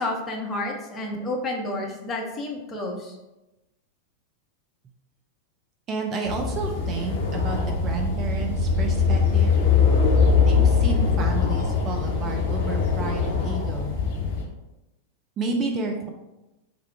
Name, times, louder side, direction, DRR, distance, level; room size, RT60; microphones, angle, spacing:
voice 1, 0.0-3.1, left 2 dB, 20° left, -1 dB, 0.9 m, -30 dB
voice 2, 5.9-9.6 10.4-14.0 15.4-16.1, right 3 dB, 30° right, 2 dB, 0.4 m, -31 dB
sound 1, 6.2-14.4, left 5 dB, 55° left, 1.0 m, -22 dB
3.7 x 2.3 x 4.4 m, 0.99 s
figure-of-eight pair, 90°, 0 cm